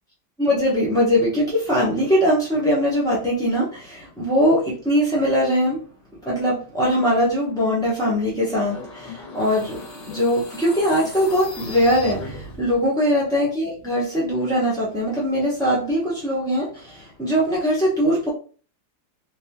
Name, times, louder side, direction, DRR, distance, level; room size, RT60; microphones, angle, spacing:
voice 1, 0.4-5.8 6.2-18.3, equal, 5° left, -6 dB, 0.4 m, -21 dB
sound 1, 8.6-12.9, left 2 dB, 45° left, 1.2 m, -38 dB
3.4 x 2.9 x 2.9 m, 0.40 s
omnidirectional pair, 1.8 m